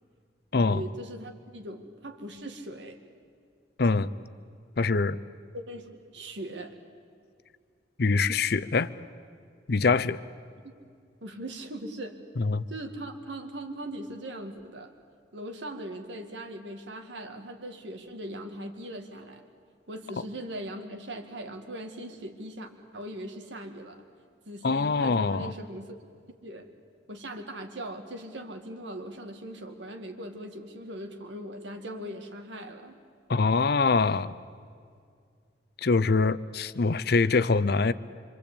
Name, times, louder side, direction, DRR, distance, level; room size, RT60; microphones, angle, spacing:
voice 1, 0.5-3.0 5.5-6.7 10.6-10.7 11.2-12.2 12.7-14.9 15.3-19.4 19.9-24.0 24.5-26.0 26.3-26.7 27.1-33.0, right 1 dB, 80° right, 5 dB, 2.0 m, -40 dB
voice 2, 3.8-4.1 4.8-5.2 8.0-8.9 9.7-10.2 12.4-12.6 24.6-25.5 33.3-34.3 35.8-37.9, left 4 dB, 60° left, 16 dB, 0.6 m, -24 dB
26.0 x 25.0 x 8.6 m, 2.2 s
head